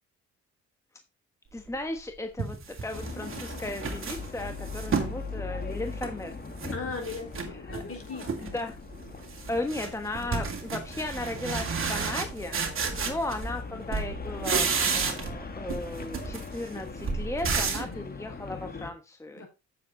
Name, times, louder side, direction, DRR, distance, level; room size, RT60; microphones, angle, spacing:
voice 1, 1.5-6.4 8.4-8.8 9.5-12.6 13.0-19.4, left 2 dB, 10° left, 6 dB, 1.2 m, -36 dB
sound 1, 1.7-1.8 2.4-5.2 5.6-6.7 7.0-7.9 8.2-8.6 8.9-13.6 13.9-15.4 15.7-17.9, right 5 dB, 45° right, 2.5 m, -32 dB
sound 2, 2.9-18.9, left 4 dB, 30° left, 1.6 m, -40 dB
voice 2, 6.7-8.6 9.8-10.5 12.8-13.2 17.8-18.1 19.4-19.5, left 4 dB, 50° left, 3 dB, 4.8 m, -40 dB
8.5 x 7.4 x 3.9 m, 0.26 s
cardioid pair, 90°, 30 cm